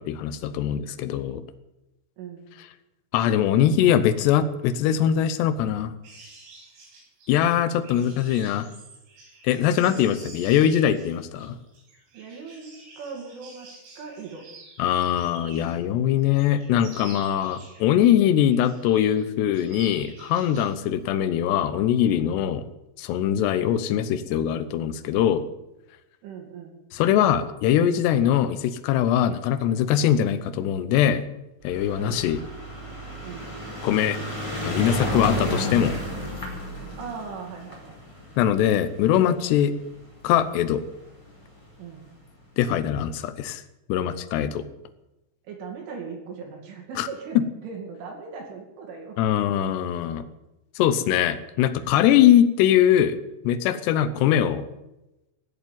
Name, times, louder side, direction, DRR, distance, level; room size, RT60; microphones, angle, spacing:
voice 1, 0.0-1.4 3.1-5.9 7.3-8.7 9.4-11.6 14.8-22.6 23.0-25.4 26.9-31.2 31.6-32.4 33.8-34.2 34.6-36.0 38.4-39.7 40.2-40.8 42.6-43.6 43.9-44.6 47.0-47.1 49.2-50.2 50.8-53.2 53.4-54.6, left 10 dB, 80° left, 12 dB, 2.5 m, -22 dB
voice 2, 2.2-2.5 12.1-14.5 26.2-26.7 32.0-32.2 33.2-33.5 37.0-38.0 38.4-38.6 41.8-42.0 45.4-49.2, right 5 dB, 70° right, 0 dB, 4.9 m, -39 dB
sound 1, 6.0-15.9 16.2-18.1 18.5-19.2 19.5-20.8 21.1-21.3, right 3 dB, 85° right, 8.9 m, -48 dB
sound 2, 31.6-40.1 41.0-41.1 41.3-41.4 41.6-41.7, left 1 dB, 5° left, 3.3 m, -32 dB
17.5 x 8.0 x 9.4 m, 0.95 s
omnidirectional pair, 6.0 m